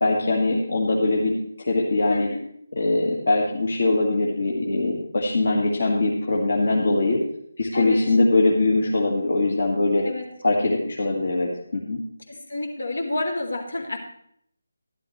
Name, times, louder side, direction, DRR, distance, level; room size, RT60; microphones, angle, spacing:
voice 1, 0.0-1.3 1.6-2.3 2.8-7.2 7.6-10.1 10.4-12.0, left 2 dB, 60° left, -2 dB, 1.8 m, -22 dB
voice 2, 2.1-2.5 7.7-8.0 10.0-10.3 12.3-14.0, left 2 dB, 75° left, 2 dB, 2.5 m, -29 dB
12.0 x 12.0 x 3.2 m, 0.70 s
figure-of-eight pair, 155°, 0 cm